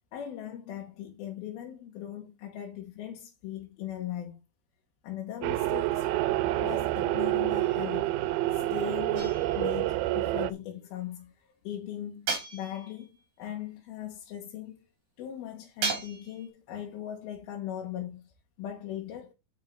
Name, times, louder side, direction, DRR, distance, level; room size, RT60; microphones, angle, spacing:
voice 1, 0.1-4.4 5.0-6.1 6.6-8.2 8.5-11.3 11.6-14.8 15.2-18.3 18.6-19.3, left 11 dB, 85° left, 3.1 m, -39 dB
sound 1, 5.4-10.5, right 16 dB, 90° right, 2.5 m, -28 dB
sound 2, 9.2-9.8 12.3-13.1 15.8-16.5, right 5 dB, 65° right, 3.9 m, -34 dB
9.4 x 5.5 x 4.6 m
omnidirectional pair, 4.3 m